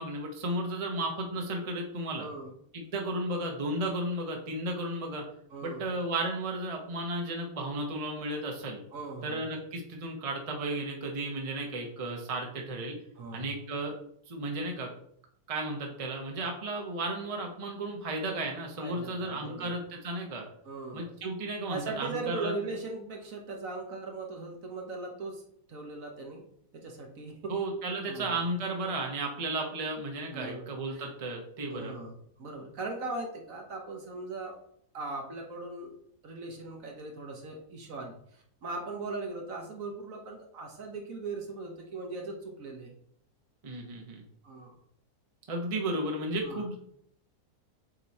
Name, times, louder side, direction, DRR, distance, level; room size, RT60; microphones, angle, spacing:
voice 1, 0.0-2.3 2.7-5.2 5.6-8.8 9.2-13.0 13.3-13.9 14.3-14.9 15.5-20.4 20.9-22.5 27.5-31.9 43.6-44.2 45.5-46.8, right 2 dB, 30° right, 0 dB, 0.8 m, -34 dB
voice 2, 2.2-2.5 5.5-5.9 8.9-9.5 13.2-13.5 18.8-19.7 20.6-21.1 21.7-25.4 25.7-26.4 26.7-27.5 28.1-28.4 30.3-31.1 31.7-34.6 34.9-35.9 36.2-42.9 44.4-44.7 46.3-46.7, right 3 dB, 60° right, 1 dB, 1.4 m, -39 dB
7.7 x 3.1 x 4.1 m, 0.68 s
omnidirectional pair, 1.7 m